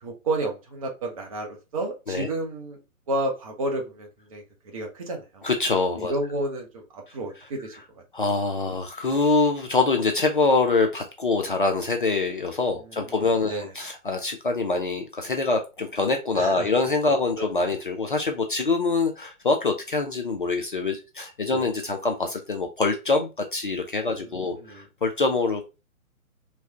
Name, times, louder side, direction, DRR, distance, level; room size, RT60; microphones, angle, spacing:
voice 1, 0.0-2.8 3.1-4.4 4.7-5.5 6.0-7.7 13.5-13.7 16.4-16.7 17.4-17.5 21.5-21.6 24.2-24.8, right 2 dB, 25° right, 1 dB, 0.8 m, -31 dB
voice 2, 5.4-6.2 7.4-7.5 8.1-25.8, left 3 dB, 40° left, 4 dB, 0.5 m, -25 dB
3.3 x 3.1 x 2.8 m, 0.28 s
figure-of-eight pair, 130°, 42 cm